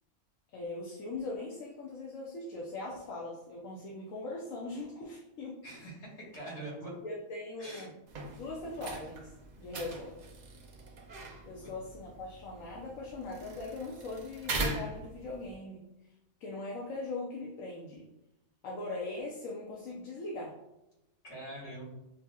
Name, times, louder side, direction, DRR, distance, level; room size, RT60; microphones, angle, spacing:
voice 1, 0.5-5.6 7.0-7.9 8.4-9.3 9.6-10.1 11.5-15.8 16.4-18.0 18.6-20.5, left 2 dB, 80° left, -3 dB, 1.1 m, -40 dB
voice 2, 5.6-6.9 7.6-7.9 11.6-11.7 21.2-21.8, right 1 dB, 60° left, -6 dB, 1.8 m, -44 dB
sound 1, 8.1-15.6, right 2 dB, 60° right, 0.4 m, -41 dB
6.2 x 2.8 x 2.3 m, 0.91 s
omnidirectional pair, 1.4 m